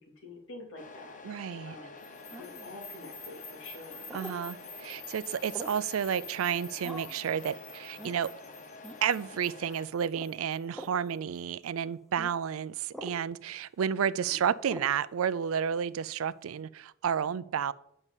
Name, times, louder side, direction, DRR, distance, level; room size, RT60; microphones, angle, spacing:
voice 1, 0.2-2.0 2.3-4.1 14.1-14.4, left 2 dB, 70° left, 0 dB, 2.9 m, -48 dB
Truck, 0.8-9.9, left 3 dB, 40° left, 0.9 m, -48 dB
voice 2, 1.2-1.8 4.1-8.3 9.0-17.7, right 8 dB, 85° right, 17 dB, 0.4 m, -31 dB
sound 1, 2.0-11.1, left 5 dB, 85° left, 1.8 m, -49 dB
sound 2, 2.3-2.7 4.1-4.4 5.5-5.9 6.8-7.2 8.0-8.2 8.8-9.0 10.1-10.3 10.7-11.0 12.2-12.3 12.9-13.2 14.7-15.0, equal, ahead, 0.8 m, -43 dB
8.1 x 5.5 x 7.2 m, 0.75 s
head